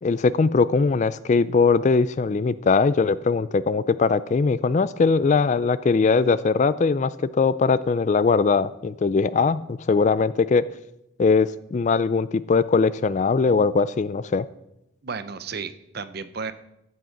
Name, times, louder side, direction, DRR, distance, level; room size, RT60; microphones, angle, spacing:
voice 1, 0.0-10.6 11.2-14.5, left 4 dB, 35° left, 17 dB, 0.3 m, -21 dB
voice 2, 15.0-16.5, right 5 dB, 50° right, 12 dB, 0.6 m, -33 dB
14.0 x 6.4 x 5.9 m, 0.83 s
head